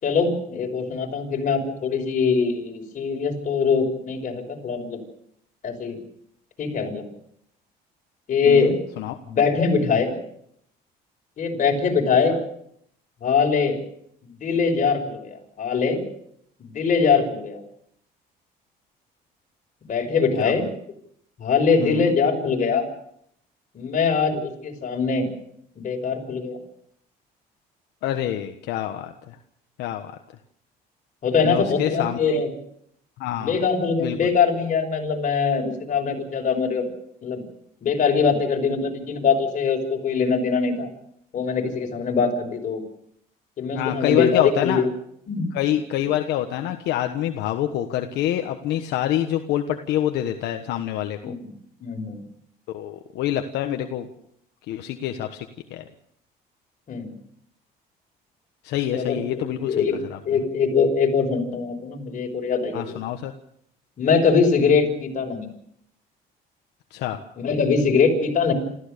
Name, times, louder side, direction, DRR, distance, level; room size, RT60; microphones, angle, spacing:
voice 1, 0.0-5.0 5.6-6.0 6.6-7.0 8.3-8.8 9.2-10.1 11.4-12.4 13.2-13.8 14.2-16.0 16.6-17.6 19.9-20.7 21.4-22.8 23.7-25.3 25.8-26.6 31.2-32.5 33.4-36.9 37.2-37.4 37.8-40.9 41.3-42.8 43.6-44.9 45.3-45.5 51.2-51.5 51.8-52.2 56.9-57.1 58.9-60.0 60.2-63.0 64.0-65.5 67.4-68.5, left 5 dB, 50° left, 2 dB, 5.9 m, -22 dB
voice 2, 8.5-9.2 20.4-20.5 21.8-22.1 28.0-29.1 29.8-30.1 31.4-32.4 33.2-33.6 34.0-34.2 43.7-44.8 45.5-51.4 52.7-54.1 54.7-55.4 55.7-55.8 58.6-59.8 60.1-60.2 62.7-63.3 66.9-67.2, left 11 dB, 85° left, 5 dB, 1.4 m, -26 dB
27.5 x 15.0 x 6.8 m, 0.72 s
cardioid pair, 110°, 17 cm